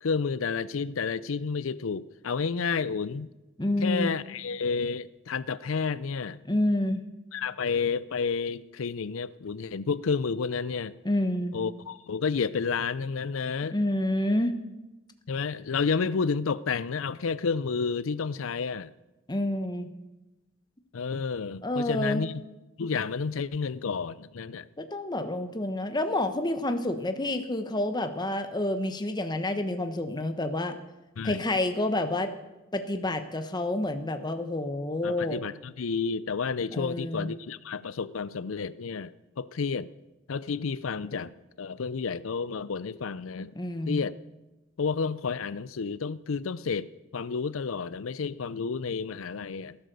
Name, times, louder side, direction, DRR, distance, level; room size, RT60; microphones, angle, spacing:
voice 1, 0.0-3.3 3.8-6.4 7.3-11.0 11.5-13.8 15.3-18.9 20.9-22.4 22.8-24.7 31.2-31.4 35.0-39.9 40.3-41.3 41.6-43.5 43.9-44.2 44.8-49.8, left 5 dB, 85° left, 0.5 m, -30 dB
voice 2, 3.6-4.1 6.5-7.0 11.0-11.6 13.7-14.6 19.3-19.9 21.6-22.3 24.8-30.8 31.2-32.3 32.7-35.4 36.7-37.3 43.5-44.0, left 1 dB, 20° left, 1.0 m, -28 dB
18.5 x 11.5 x 6.8 m
head